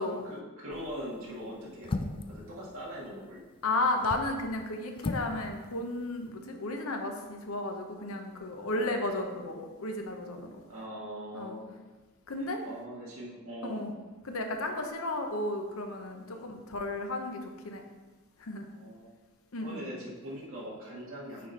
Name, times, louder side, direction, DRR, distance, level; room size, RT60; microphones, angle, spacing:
voice 1, 0.1-3.4 8.7-8.9 10.7-11.8 12.4-13.8 16.3-16.5 18.7-19.2 19.6-21.5, equal, 70° right, -6 dB, 1.7 m, -42 dB
sound 1, 0.7-1.0 1.8-2.4 3.8-4.3 5.0-5.4 5.6-5.7, left 2 dB, 25° left, 0.3 m, -34 dB
voice 2, 3.6-10.6 11.3-11.6 12.3-12.6 13.6-13.9 14.2-17.8 18.4-18.7 19.5-19.9, left 2 dB, 75° left, 4 dB, 0.8 m, -33 dB
6.2 x 4.3 x 4.6 m, 1.2 s
head